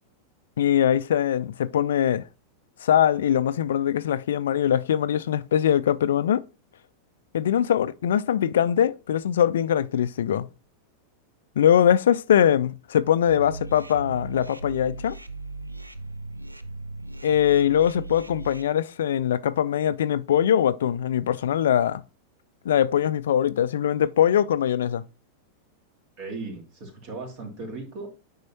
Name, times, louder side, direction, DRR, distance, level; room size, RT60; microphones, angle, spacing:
voice 1, 0.6-2.3 2.8-6.4 7.3-10.5 11.6-15.2 17.2-22.0 22.7-25.0, left 10 dB, 60° left, 0.3 m, -22 dB
sound 1, 13.3-18.6, right 2 dB, 85° right, 0.5 m, -38 dB
voice 2, 26.2-28.1, right 3 dB, 45° right, 2.6 m, -37 dB
9.1 x 5.4 x 2.9 m
figure-of-eight pair, 90°, 0 cm